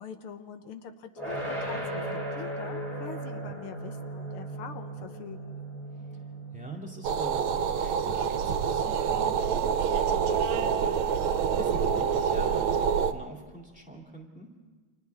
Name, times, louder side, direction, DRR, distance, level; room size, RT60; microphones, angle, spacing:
voice 1, 0.0-5.6, left 7 dB, 85° left, 7 dB, 1.9 m, -44 dB
sound 1, 1.2-12.1, right 1 dB, 35° left, 5.7 m, -39 dB
voice 2, 6.5-14.5, equal, 5° right, -1 dB, 2.2 m, -44 dB
sound 2, 7.0-13.1, right 7 dB, 75° right, 1.5 m, -26 dB
29.0 x 26.5 x 3.5 m, 1.4 s
omnidirectional pair, 2.4 m